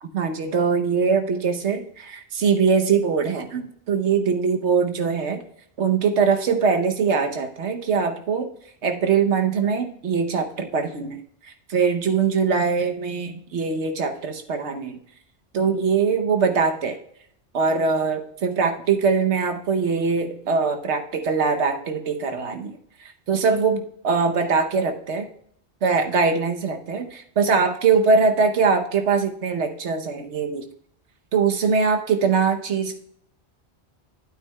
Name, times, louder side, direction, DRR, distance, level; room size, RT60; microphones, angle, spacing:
voice 1, 0.0-5.4 5.8-8.5 8.8-15.0 15.5-17.0 17.5-22.7 23.0-25.3 25.8-30.6 31.3-33.0, right 5 dB, 85° right, 6 dB, 1.2 m, -22 dB
12.0 x 8.7 x 2.3 m, 0.68 s
omnidirectional pair, 1.1 m